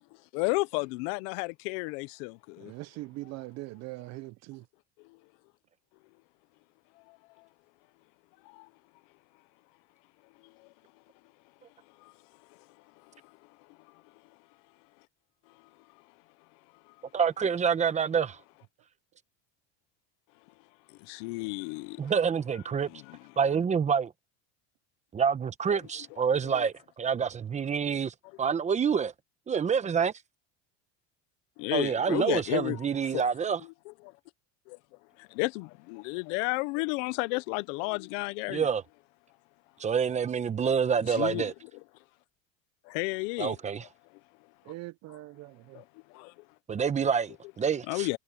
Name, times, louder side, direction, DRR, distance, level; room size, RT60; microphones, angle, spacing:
voice 1, 0.3-2.7 5.0-5.2 7.1-7.5 8.4-8.7 10.4-10.7 12.0-12.1 12.5-12.6 13.1-13.3 13.7-14.0 20.9-22.0 22.9-23.2 25.7-25.8 26.5-26.7 31.6-32.8 33.1-33.2 33.9-34.0 34.7-34.8 35.2-38.7 41.1-41.5 42.8-43.6 45.1-45.2 45.7-46.3 47.9-48.2, left 26 dB, 75° left, 0.8 m, -33 dB
voice 2, 2.6-4.6 44.7-45.8, right 20 dB, 45° right, 0.5 m, -42 dB
voice 3, 17.1-18.4 22.0-22.9 23.4-24.1 25.1-29.1 29.5-30.1 31.7-33.6 38.5-38.8 39.8-41.5 43.4-43.8 46.7-48.1, right 6 dB, 20° right, 0.9 m, -27 dB
cardioid pair, 150°, 38 cm